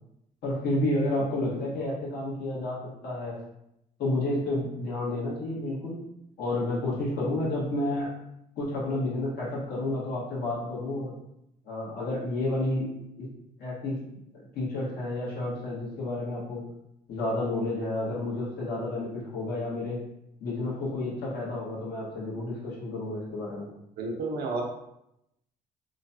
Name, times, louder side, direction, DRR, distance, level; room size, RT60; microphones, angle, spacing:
voice 1, 0.4-3.4 4.0-6.0 6.4-8.1 8.6-11.1 11.6-12.9 13.2-13.3 13.6-14.0 14.3-16.6 17.1-20.0 20.4-23.7, left 2 dB, 65° left, -6 dB, 1.4 m, -30 dB
voice 2, 24.0-24.6, right 3 dB, 65° right, 0 dB, 0.7 m, -31 dB
3.0 x 2.2 x 2.6 m, 0.82 s
cardioid pair, 110°, 17 cm